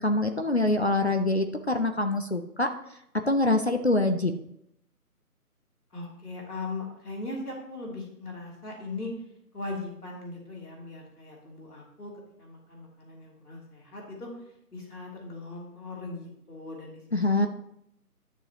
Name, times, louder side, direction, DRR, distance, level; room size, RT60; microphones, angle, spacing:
voice 1, 0.0-2.7 3.3-4.3 17.1-17.5, left 2 dB, 45° left, 6 dB, 0.5 m, -25 dB
voice 2, 5.9-9.1 9.5-12.1 12.4-14.3 14.7-17.5, left 3 dB, 75° left, -2 dB, 3.1 m, -39 dB
11.0 x 6.9 x 2.9 m, 0.77 s
figure-of-eight pair, 160°, 46 cm